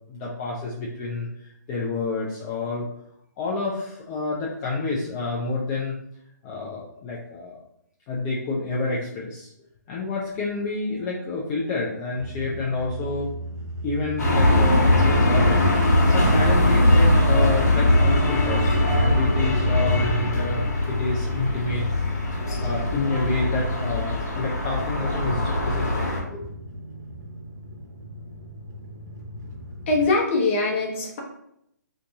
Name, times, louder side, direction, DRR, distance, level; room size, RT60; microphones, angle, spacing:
voice 1, 0.1-2.9 3.4-5.9 6.4-7.6 8.1-9.5 9.9-13.3 13.8-21.8 22.6-25.9 26.3-26.6, left 3 dB, 25° left, -4 dB, 0.5 m, -29 dB
sound 1, 12.2-30.0, equal, 80° right, 0.8 m, -34 dB
sound 2, 14.2-26.2, left 1 dB, 60° left, 1.2 m, -21 dB
voice 2, 29.9-31.2, left 3 dB, 40° left, -1 dB, 0.9 m, -22 dB
2.7 x 2.5 x 3.5 m, 0.75 s
figure-of-eight pair, 135°, 10 cm